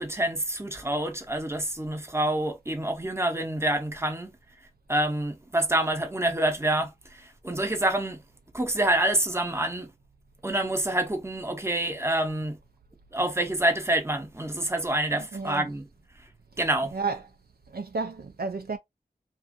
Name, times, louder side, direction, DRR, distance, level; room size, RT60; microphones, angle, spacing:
voice 1, 0.0-4.4 4.9-8.2 8.5-9.9 10.4-12.6 13.1-15.9 16.2-16.3 16.6-17.0, right 1 dB, 15° right, 0.7 m, -27 dB
voice 2, 15.3-15.6 16.9-17.2 17.7-18.8, right 4 dB, 65° right, 0.4 m, -31 dB
2.4 x 2.4 x 2.5 m
wide cardioid pair, 40°, 17 cm